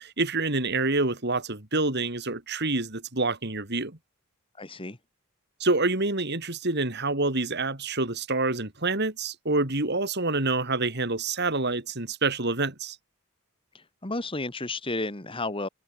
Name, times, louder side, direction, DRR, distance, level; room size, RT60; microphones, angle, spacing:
voice 1, 0.0-4.0 5.6-13.0, right 3 dB, 50° right, 3.6 m, -27 dB
voice 2, 4.6-5.0 13.7-15.7, left 2 dB, 25° left, 2.1 m, -32 dB
head